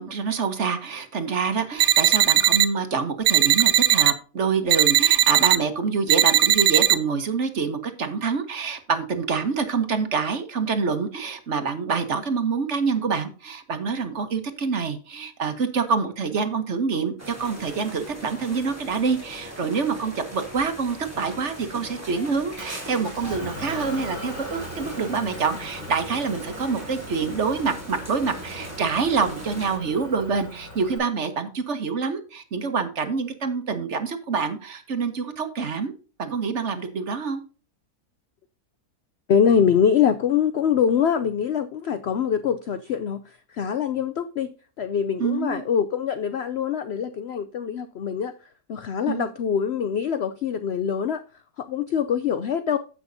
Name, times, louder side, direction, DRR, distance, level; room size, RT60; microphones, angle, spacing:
voice 1, 0.0-35.9 36.2-37.4 45.2-45.6 49.1-49.3, right 5 dB, 50° right, 1.3 m, -26 dB
sound 1, 1.8-2.7 3.3-4.1 4.7-5.6 6.1-7.0, right 12 dB, 70° right, 0.9 m, -18 dB
sound 2, 17.2-29.8, right 1 dB, 10° right, 3.3 m, -40 dB
Motor vehicle (road) / Engine, 22.6-31.0, left 1 dB, 10° left, 5.5 m, -40 dB
voice 2, 39.3-48.3 48.7-51.2 51.6-52.8, left 7 dB, 70° left, 0.6 m, -24 dB
15.0 x 6.1 x 2.7 m
omnidirectional pair, 1.7 m